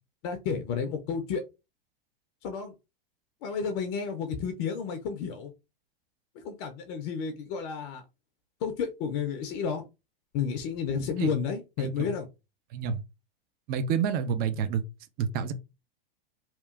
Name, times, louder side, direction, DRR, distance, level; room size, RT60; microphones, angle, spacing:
voice 1, 0.2-1.4 2.4-2.7 3.4-5.5 6.4-8.0 8.6-9.9 10.3-12.3, left 6 dB, 45° left, 0.5 m, -31 dB
voice 2, 11.8-12.1 12.7-13.0 13.7-14.8 15.2-15.5, right 7 dB, 35° right, 0.4 m, -29 dB
2.9 x 2.3 x 2.3 m
hypercardioid pair, 95°, 29 cm